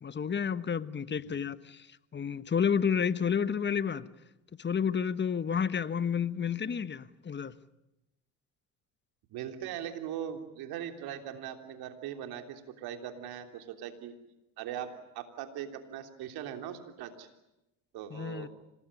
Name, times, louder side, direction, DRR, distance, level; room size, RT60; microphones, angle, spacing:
voice 1, 0.0-1.9 2.1-4.1 4.6-7.5 18.1-18.5, left 7 dB, 30° left, 1.3 m, -30 dB
voice 2, 9.3-14.2 14.6-17.3 17.9-18.5, right 10 dB, 65° right, 3.3 m, -40 dB
26.5 x 19.5 x 9.9 m
supercardioid pair, 75°, 39 cm